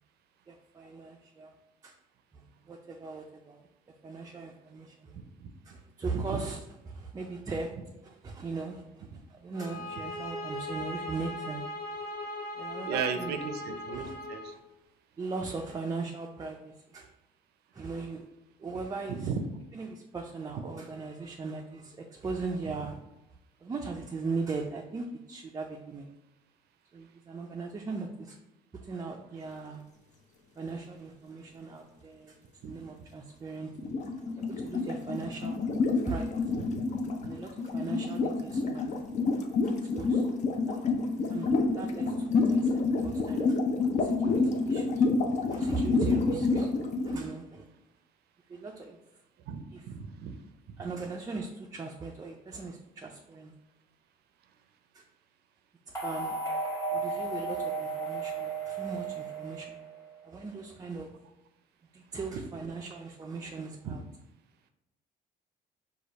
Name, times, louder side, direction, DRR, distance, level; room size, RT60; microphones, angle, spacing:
voice 1, 0.5-1.5 1.8-2.0 2.3-3.7 4.0-5.2 5.6-7.7 8.0-11.7 12.6-13.4 13.9-14.2 15.2-17.1 17.7-18.3 18.6-19.3 19.7-23.0 23.6-26.1 26.9-28.4 28.7-29.8 30.6-32.4 32.6-33.7 34.5-35.6 36.0-36.4 37.2-39.1 39.6-40.2 40.7-40.8 41.3-43.6 44.0-45.1 45.5-46.8 47.0-47.7 48.5-49.0 49.7-49.9 50.8-53.5 54.9-55.0 55.9-56.4 56.9-59.8 60.2-61.1 61.9-64.0, right 4 dB, 20° right, 1 dB, 0.4 m, -39 dB
sound 1, 9.5-14.5, left 1 dB, 65° left, 1.4 m, -38 dB
voice 2, 12.9-14.5 19.2-19.4 32.6-32.7 49.5-50.4 63.8-63.9, right 7 dB, 75° right, 8 dB, 0.5 m, -35 dB
sound 2, 33.8-47.2, left 3 dB, 45° left, 0.6 m, -28 dB
sound 3, 55.9-60.2, right 3 dB, 20° left, 1.5 m, -34 dB
4.9 x 2.3 x 4.0 m, 0.93 s
cardioid pair, 110°, 17 cm